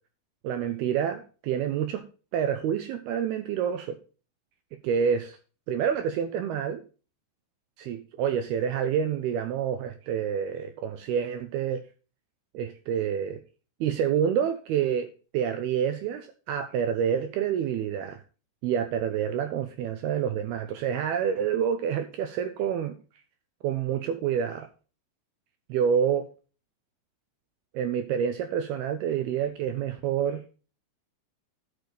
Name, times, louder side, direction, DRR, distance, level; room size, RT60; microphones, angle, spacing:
voice 1, 0.4-2.0 2.3-4.0 4.8-5.4 5.7-6.8 7.8-11.8 12.5-13.4 13.8-15.1 15.3-18.2 18.6-23.0 23.6-24.7 25.7-26.3 27.7-30.4, right 8 dB, 80° right, 8 dB, 2.4 m, -28 dB
12.0 x 6.6 x 4.0 m, 0.35 s
omnidirectional pair, 5.3 m